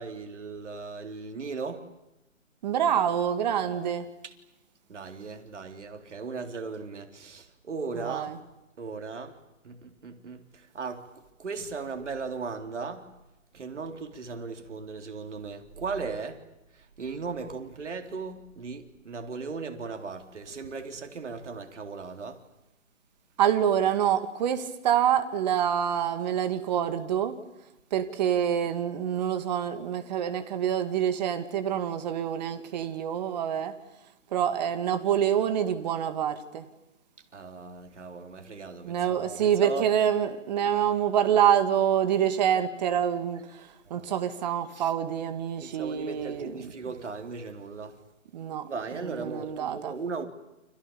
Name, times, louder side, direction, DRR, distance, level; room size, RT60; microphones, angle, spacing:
voice 1, 0.0-1.9 4.2-4.3 4.9-8.4 8.8-9.4 9.6-13.1 13.5-16.4 16.7-22.4 37.3-39.9 43.9-44.1 44.7-44.9 45.6-48.0 48.6-50.3, right 4 dB, 65° right, 3.9 m, -37 dB
voice 2, 2.6-4.1 8.0-8.3 23.4-27.4 27.9-33.7 34.3-36.7 38.8-46.5 48.3-48.7 49.0-49.9, right 9 dB, 35° right, 2.3 m, -26 dB
29.5 x 26.5 x 7.2 m
hypercardioid pair, 150°, 39 cm